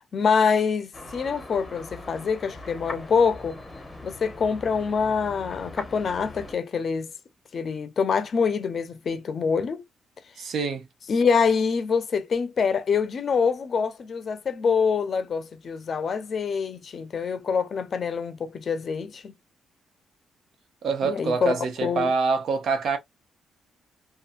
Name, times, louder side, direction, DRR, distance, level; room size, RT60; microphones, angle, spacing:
voice 1, 0.0-3.6 4.0-7.1 7.5-9.8 11.1-19.3 21.0-22.1, left 5 dB, 50° left, 0.5 m, -25 dB
sound 1, 0.9-6.5, left 2 dB, 15° left, 0.8 m, -41 dB
voice 2, 10.4-10.9 20.8-23.0, right 4 dB, 65° right, 0.7 m, -25 dB
2.7 x 2.4 x 2.5 m
cardioid pair, 105°, 0 cm